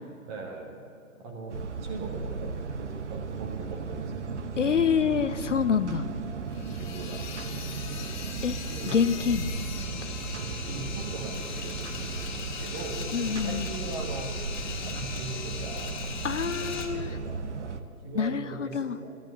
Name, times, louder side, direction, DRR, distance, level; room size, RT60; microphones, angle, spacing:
voice 1, 0.2-0.8 1.1-4.3 4.9-5.0 6.7-8.1 8.7-9.1 10.3-14.3 14.8-16.0 16.3-16.7 16.9-17.7 18.0-19.1, right 3 dB, 15° right, 2 dB, 1.5 m, -40 dB
sound 1, 1.5-17.8, right 4 dB, 55° right, 1.1 m, -36 dB
voice 2, 4.6-6.1 8.4-8.6 8.9-9.5 10.0-10.1 13.1-13.6 16.2-17.1 18.2-19.0, left 7 dB, 55° left, 12 dB, 0.6 m, -26 dB
sound 2, 6.5-16.9, left 5 dB, 30° left, 1.4 m, -39 dB
14.0 x 11.5 x 6.9 m, 2.7 s
figure-of-eight pair, 140°, 43 cm